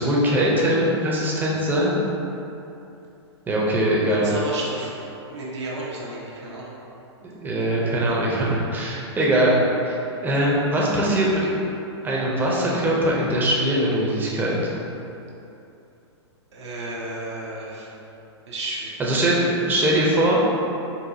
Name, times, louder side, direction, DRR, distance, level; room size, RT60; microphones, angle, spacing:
voice 1, 0.0-2.0 3.5-4.3 7.2-9.5 9.8-10.0 10.2-11.5 12.0-14.6 19.0-20.4, right 1 dB, 15° right, -4 dB, 0.5 m, -21 dB
voice 2, 4.1-5.0 5.3-6.7 16.5-17.9 18.5-18.9, right 2 dB, 75° right, -5 dB, 0.6 m, -32 dB
4.1 x 2.3 x 2.7 m, 2.8 s
hypercardioid pair, 120°, 15 cm